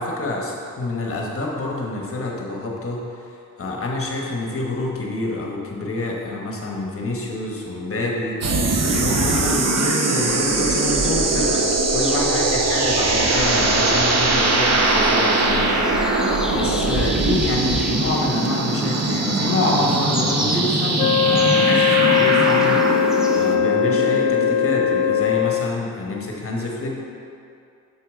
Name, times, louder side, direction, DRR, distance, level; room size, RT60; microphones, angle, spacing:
voice 1, 0.0-3.3 3.6-15.9 16.2-27.0, left 2 dB, 40° left, -2 dB, 1.2 m, -27 dB
sound 1, 8.4-25.2, right 2 dB, 50° right, 0.8 m, -21 dB
sound 2, 8.9-23.6, equal, ahead, 0.6 m, -34 dB
Wind instrument woodwind instrument, 21.0-25.7, left 11 dB, 75° left, 0.5 m, -20 dB
7.0 x 4.6 x 3.6 m, 2.5 s
cardioid pair, 75°, 34 cm